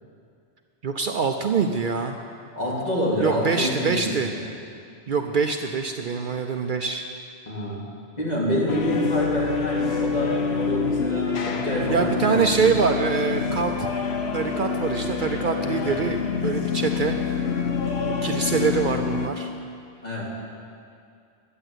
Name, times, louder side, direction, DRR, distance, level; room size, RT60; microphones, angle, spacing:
voice 1, 0.8-2.2 3.2-4.3 5.1-7.0 11.9-13.9 14.3-17.2 18.0-19.5, right 5 dB, 55° right, 5 dB, 0.7 m, -24 dB
voice 2, 2.5-4.4 7.5-7.8 8.2-12.4 20.0-20.2, equal, 40° left, -6 dB, 3.2 m, -27 dB
sound 1, 8.7-19.3, left 5 dB, 80° left, 1.1 m, -26 dB
11.5 x 8.9 x 8.0 m, 2.4 s
omnidirectional pair, 1.1 m